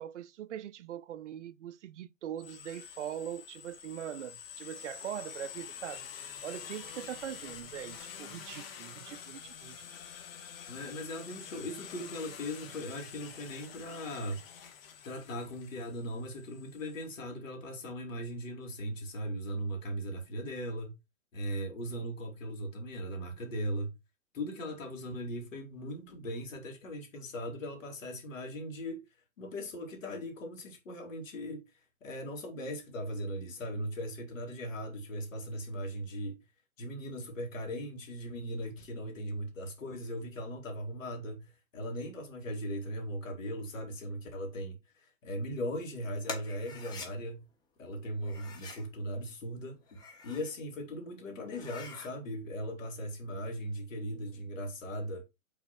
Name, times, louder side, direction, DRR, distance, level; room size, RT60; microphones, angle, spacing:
voice 1, 0.0-9.9, right 10 dB, 60° right, 0.6 m, -42 dB
sound 1, 2.4-17.0, left 8 dB, 45° left, 1.6 m, -47 dB
voice 2, 10.7-14.4 15.0-21.0 21.3-23.9 24.3-29.0 29.4-31.6 32.0-36.4 36.8-47.4 47.8-55.2, equal, 65° left, 2.9 m, -39 dB
sound 2, 46.2-47.1 48.2-48.9 49.8-50.6 51.0-51.1 51.5-52.1, left 4 dB, 10° left, 0.8 m, -44 dB
5.8 x 4.2 x 4.4 m
hypercardioid pair, 140°, 41 cm